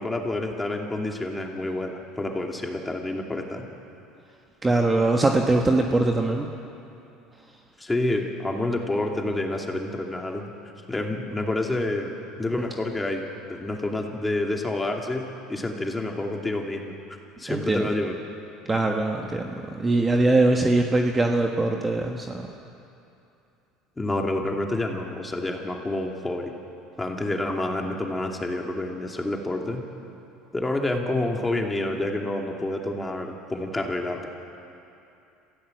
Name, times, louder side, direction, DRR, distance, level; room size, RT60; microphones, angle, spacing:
voice 1, 0.0-3.7 7.8-10.5 10.9-12.1 12.4-16.9 17.4-18.2 24.0-26.5 27.0-29.9 30.5-34.3, left 2 dB, 10° left, 1 dB, 2.5 m, -28 dB
voice 2, 4.6-6.5 17.5-17.9 18.7-22.4, right 2 dB, 15° right, 2 dB, 1.5 m, -22 dB
27.5 x 15.5 x 7.9 m, 2.7 s
supercardioid pair, 115°, 0 cm